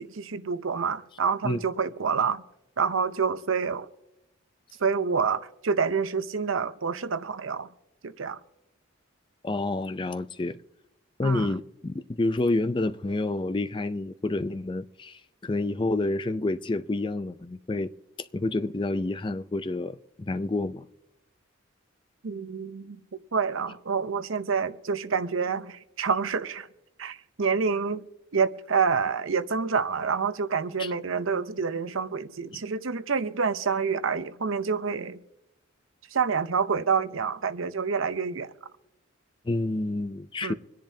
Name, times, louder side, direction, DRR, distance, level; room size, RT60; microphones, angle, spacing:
voice 1, 0.0-2.4 2.8-3.9 4.8-7.7 8.0-8.4 11.2-11.5 22.2-26.7 27.0-28.0 28.3-35.2 36.1-38.5 40.4-40.5, right 5 dB, 75° right, 0.7 m, -27 dB
voice 2, 9.4-10.6 11.2-17.9 18.2-20.9 30.8-30.9 32.5-32.6 39.4-40.5, left 2 dB, 25° left, 0.4 m, -29 dB
25.5 x 10.5 x 2.8 m
head